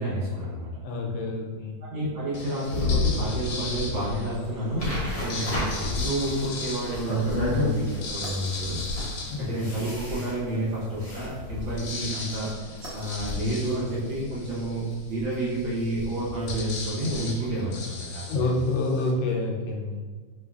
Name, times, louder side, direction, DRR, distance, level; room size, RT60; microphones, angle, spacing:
voice 1, 0.0-0.7 1.9-8.8 9.4-18.6, right 1 dB, 85° right, -7 dB, 1.8 m, -30 dB
voice 2, 0.8-1.8 5.4-5.5 9.3-9.7 18.3-20.0, left 2 dB, 85° left, 0 dB, 1.4 m, -28 dB
sound 1, 2.3-4.5 5.1-10.3 10.8-10.9 11.1-19.1, left 3 dB, 65° left, 1.2 m, -38 dB
sound 2, 2.7-17.8, left 3 dB, 45° right, 1.0 m, -35 dB
sound 3, 4.8-12.0, left 1 dB, 35° left, 0.5 m, -33 dB
5.6 x 3.1 x 2.4 m, 1.5 s
omnidirectional pair, 2.0 m